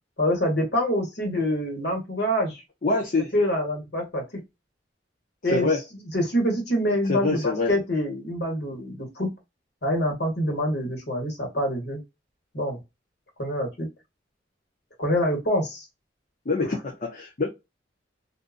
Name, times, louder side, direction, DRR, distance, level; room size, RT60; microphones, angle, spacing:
voice 1, 0.2-2.6 3.3-4.2 5.4-5.7 6.1-9.3 9.8-12.0 12.5-12.8 13.4-13.9 15.0-15.8 16.6-16.7, equal, 65° left, 1.4 m, -25 dB
voice 2, 2.8-3.3 5.5-5.8 7.1-7.7 16.5-17.5, left 3 dB, 45° left, 0.6 m, -25 dB
2.6 x 2.5 x 2.4 m
head